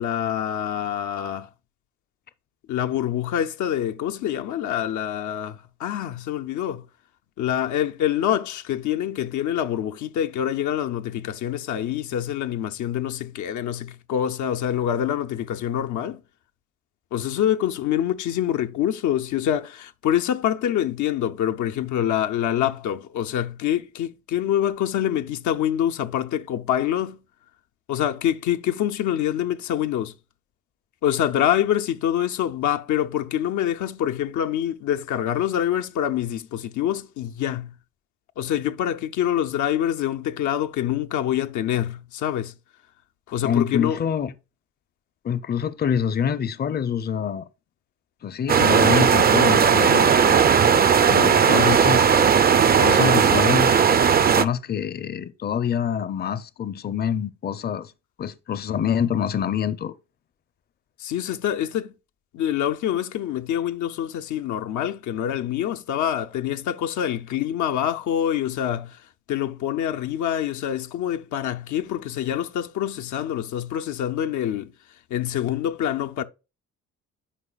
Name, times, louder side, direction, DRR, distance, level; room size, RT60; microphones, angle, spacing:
voice 1, 0.0-1.5 2.7-6.8 7.4-16.2 17.1-27.2 27.9-30.1 31.0-37.7 38.4-42.5 43.3-44.0 61.0-61.9 62.3-69.0 69.3-74.7 75.1-76.2, left 10 dB, 75° left, 0.6 m, -25 dB
voice 2, 43.4-44.3 45.2-47.4 48.2-50.5 51.1-52.1 52.8-53.8 54.2-57.9 58.2-59.9, left 8 dB, 35° left, 0.6 m, -26 dB
sound 1, 48.5-54.4, right 7 dB, 30° right, 0.5 m, -17 dB
9.9 x 4.9 x 2.4 m
cardioid pair, 90°, 30 cm